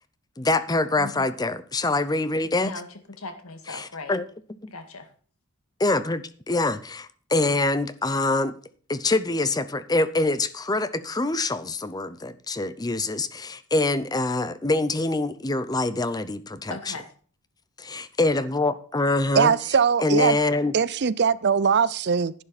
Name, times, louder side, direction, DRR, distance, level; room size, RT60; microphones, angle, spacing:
voice 1, 0.4-2.7 3.8-4.2 4.6-4.7 5.8-8.6 8.9-16.8 17.8-19.5 20.0-20.7, left 2 dB, 20° left, 0.7 m, -25 dB
voice 2, 1.0-1.3 2.6-4.2 4.7-5.1 16.7-17.1, left 3 dB, 75° left, 2.0 m, -38 dB
voice 3, 19.4-20.4 20.7-22.3, right 6 dB, 50° right, 0.5 m, -21 dB
11.5 x 10.0 x 4.2 m
head